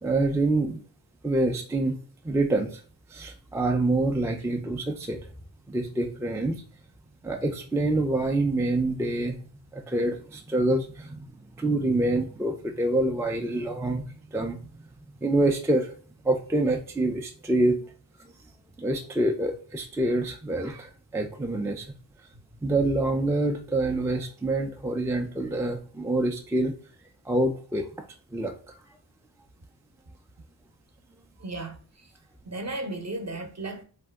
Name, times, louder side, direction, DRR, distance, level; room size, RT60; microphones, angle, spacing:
voice 1, 0.0-0.8 1.2-2.0 2.2-2.8 3.1-5.2 5.7-6.6 7.2-9.4 9.7-11.2 11.6-14.6 15.2-16.0 16.2-17.8 18.8-21.9 22.6-26.7 27.3-27.9 28.3-28.5, right 2 dB, 5° right, 0.3 m, -26 dB
voice 2, 31.4-31.8 32.4-33.8, right 2 dB, 35° right, 0.7 m, -34 dB
2.6 x 2.2 x 3.4 m
cardioid pair, 45°, 46 cm